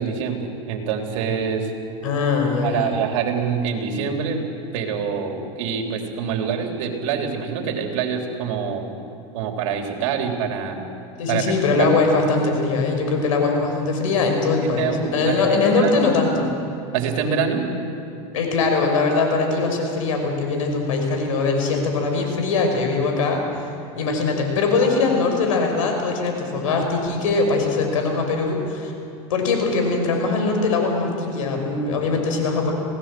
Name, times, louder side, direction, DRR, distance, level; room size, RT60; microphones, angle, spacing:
voice 1, 0.0-1.7 2.6-4.4 4.7-8.9 9.3-10.8 11.3-11.5 14.8-15.9 16.9-17.7, right 6 dB, 70° right, 2 dB, 3.7 m, -25 dB
voice 2, 2.0-2.9 11.2-16.5 18.3-23.4 24.0-28.9 29.3-32.7, left 3 dB, 90° left, 3 dB, 5.7 m, -21 dB
26.5 x 18.0 x 7.8 m, 2.8 s
supercardioid pair, 125°, 17 cm